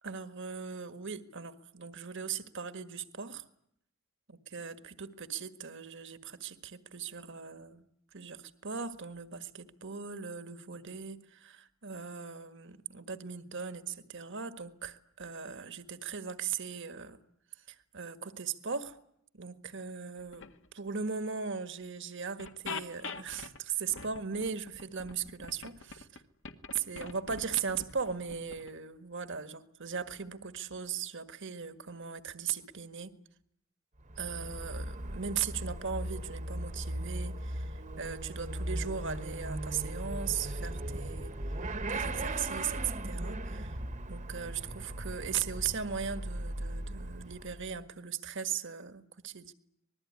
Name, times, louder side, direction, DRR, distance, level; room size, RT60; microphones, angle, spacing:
voice 1, 0.0-3.4 4.3-7.9 8.1-17.2 17.7-19.0 19.3-20.5 20.7-26.2 26.7-33.1 34.2-41.6 41.9-43.8 44.1-49.5, right 6 dB, 60° right, 10 dB, 1.7 m, -38 dB
sound 1, 20.2-20.7 21.8-21.9 22.4-23.6 23.9-26.2 26.4-28.7, left 4 dB, 60° left, 1.9 m, -44 dB
Motorcycle / Accelerating revving vroom, 34.0-47.8, right 1 dB, 35° right, 1.4 m, -38 dB
26.0 x 20.5 x 9.7 m, 0.73 s
head